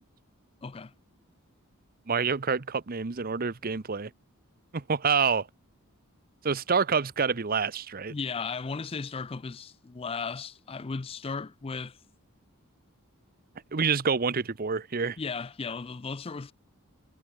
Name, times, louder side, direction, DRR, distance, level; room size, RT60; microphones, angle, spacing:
voice 1, 0.6-0.9 8.1-12.0 15.2-16.5, left 4 dB, 25° left, 0.4 m, -35 dB
voice 2, 2.1-4.1 4.7-5.5 6.4-8.1 13.7-15.2, right 5 dB, 40° right, 0.8 m, -27 dB
head